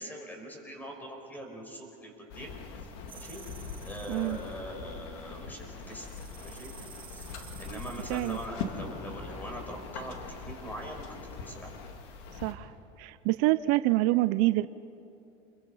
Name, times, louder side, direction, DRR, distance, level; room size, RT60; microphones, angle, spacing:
voice 1, 0.0-2.6 3.1-3.4 3.8-6.1 6.4-6.7 7.1-7.3 7.6-11.1 11.4-11.8, equal, 10° left, 3 dB, 5.0 m, -42 dB
sound 1, 2.3-12.5, left 4 dB, 80° left, 2.5 m, -42 dB
sound 2, 3.1-4.6 5.9-8.5, right 9 dB, 35° right, 1.1 m, -52 dB
voice 2, 4.1-4.4 7.7-7.8 8.1-8.4 12.4-14.7, right 18 dB, 70° right, 15 dB, 0.6 m, -27 dB
28.5 x 22.0 x 5.6 m, 2.7 s
supercardioid pair, 120°, 15 cm